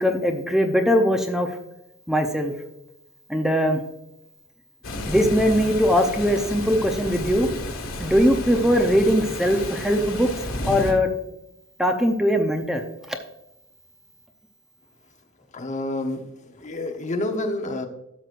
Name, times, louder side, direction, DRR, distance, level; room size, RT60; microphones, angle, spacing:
voice 1, 0.0-1.5 2.1-2.5 3.3-3.8 5.1-7.5 8.0-10.3 10.6-11.1 11.8-12.8 13.1-13.2, equal, ahead, 4 dB, 0.6 m, -20 dB
sound 1, 4.8-10.9, left 2 dB, 80° left, 1.8 m, -32 dB
voice 2, 15.5-17.9, left 1 dB, 35° left, 4 dB, 0.9 m, -29 dB
12.5 x 6.1 x 2.5 m, 0.86 s
head